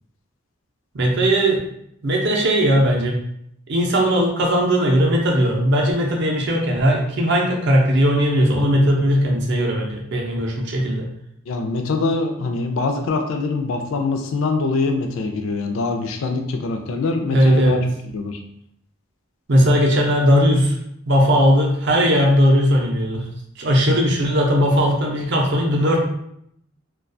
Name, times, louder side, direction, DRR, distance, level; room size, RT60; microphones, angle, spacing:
voice 1, 0.9-1.6 2.0-3.2 3.7-11.1 17.3-17.8 19.5-20.7 21.1-23.3 23.6-26.0, equal, 55° right, 0 dB, 0.5 m, -18 dB
voice 2, 11.5-17.8 18.1-18.4, left 3 dB, 70° left, 5 dB, 0.4 m, -23 dB
2.3 x 2.2 x 2.5 m, 0.72 s
head